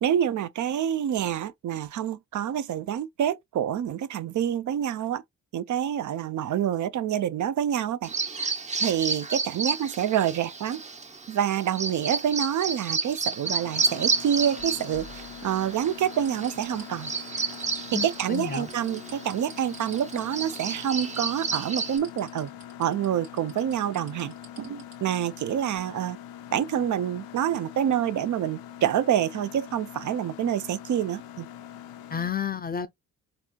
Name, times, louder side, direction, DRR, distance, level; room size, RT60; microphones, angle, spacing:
voice 1, 0.0-5.2 5.5-8.1 8.8-10.8 11.3-17.1 17.9-22.5 22.8-26.2 26.5-31.5, right 10 dB, 60° right, 0.5 m, -27 dB
Bird vocalization bird call bird song, 8.0-22.0, right 4 dB, 20° right, 0.7 m, -32 dB
Mechanisms, 13.4-32.3, left 11 dB, 85° left, 0.5 m, -44 dB
sound 1, 14.4-15.7 16.1-25.4 25.8-25.9, right 4 dB, 85° right, 1.5 m, -49 dB
voice 2, 17.9-18.7 32.1-32.9, left 7 dB, 25° left, 0.4 m, -31 dB
4.2 x 2.5 x 2.2 m
supercardioid pair, 50°, 35 cm